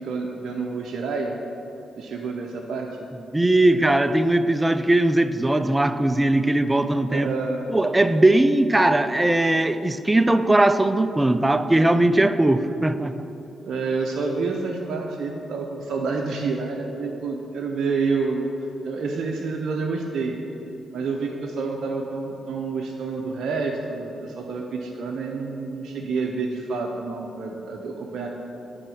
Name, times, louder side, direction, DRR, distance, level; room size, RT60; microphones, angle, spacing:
voice 1, 0.0-1.4 2.0-2.9 7.1-7.7 13.6-18.5 18.8-20.3 20.9-28.3, right 4 dB, 70° right, 0 dB, 0.6 m, -28 dB
voice 2, 3.3-7.3 7.7-13.1, right 1 dB, 20° right, 11 dB, 0.5 m, -19 dB
8.9 x 4.3 x 6.4 m, 2.9 s
supercardioid pair, 50°, 0 cm